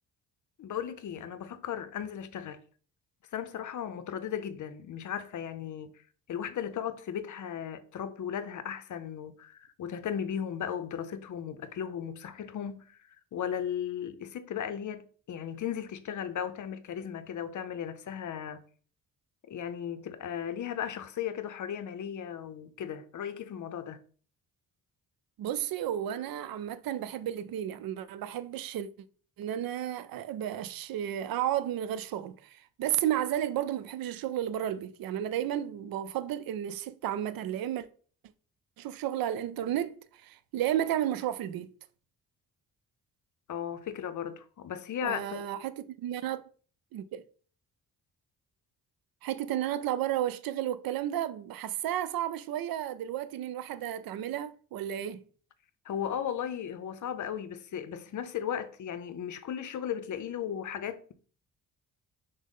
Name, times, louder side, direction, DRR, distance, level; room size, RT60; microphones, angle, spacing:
voice 1, 0.6-2.6 3.3-6.0 6.3-18.6 19.4-24.0 43.5-45.5 55.8-61.1, left 9 dB, 55° left, 0.6 m, -36 dB
voice 2, 25.4-28.9 29.4-37.9 38.8-41.7 45.0-46.4 46.9-47.2 49.2-55.2, right 11 dB, 65° right, 0.5 m, -32 dB
6.1 x 2.1 x 3.7 m
supercardioid pair, 60°, 37 cm